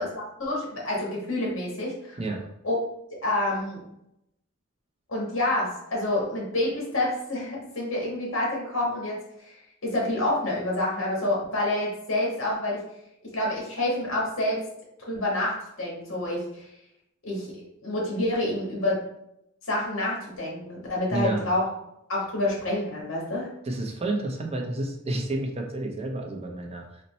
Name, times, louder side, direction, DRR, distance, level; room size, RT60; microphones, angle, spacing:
voice 1, 0.0-2.2 2.6-2.8 3.2-3.8 5.1-9.2 9.5-9.6 9.8-12.8 13.2-14.6 15.1-16.7 17.2-19.0 19.7-21.7 22.1-23.5, left 1 dB, 70° left, -3 dB, 1.5 m, -28 dB
voice 2, 21.1-21.4 23.6-27.0, right 2 dB, 30° right, 1 dB, 0.6 m, -30 dB
4.1 x 2.2 x 4.1 m, 0.80 s
head